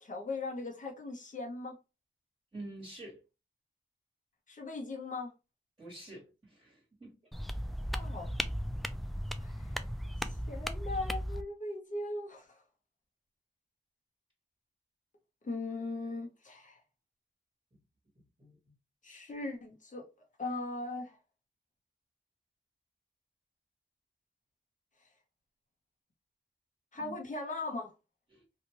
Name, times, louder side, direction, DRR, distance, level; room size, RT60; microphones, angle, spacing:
voice 1, 0.0-1.8 4.5-5.3 7.9-8.3 9.4-9.8 10.2-12.6 15.4-16.8 19.0-20.1 20.4-21.2 26.9-27.9, left 2 dB, 40° left, 0.9 m, -39 dB
voice 2, 2.5-3.2 5.8-7.1 18.4-18.5 26.9-27.1 28.3-28.4, right 2 dB, 15° right, 1.6 m, -47 dB
sound 1, 7.3-11.4, equal, ahead, 0.3 m, -36 dB
2.7 x 2.5 x 2.9 m
wide cardioid pair, 75°, 19 cm